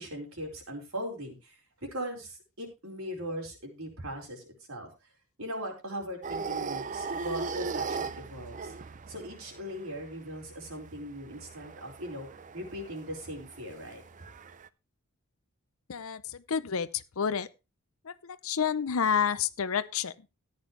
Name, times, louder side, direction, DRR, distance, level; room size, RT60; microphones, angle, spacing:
voice 1, 0.0-4.9 5.4-8.7 9.1-12.3 12.5-14.0, equal, 65° right, 4.7 m, -39 dB
sound 1, 6.2-14.7, right 4 dB, 35° right, 0.5 m, -39 dB
voice 2, 15.9-16.2 16.5-17.5 18.1-20.1, left 7 dB, 65° left, 0.6 m, -29 dB
14.0 x 9.7 x 3.2 m
head